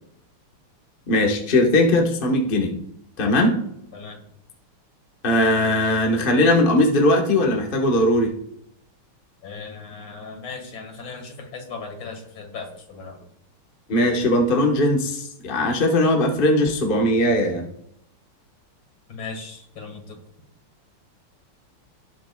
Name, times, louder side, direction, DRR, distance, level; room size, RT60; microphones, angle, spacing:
voice 1, 1.1-2.7 3.2-3.6 5.2-8.3 13.9-17.6, left 1 dB, 30° left, 1 dB, 1.2 m, -19 dB
voice 2, 3.9-4.3 9.4-13.2 19.1-20.2, left 4 dB, 60° left, 4 dB, 2.6 m, -37 dB
18.5 x 7.6 x 2.3 m, 0.76 s
omnidirectional pair, 2.4 m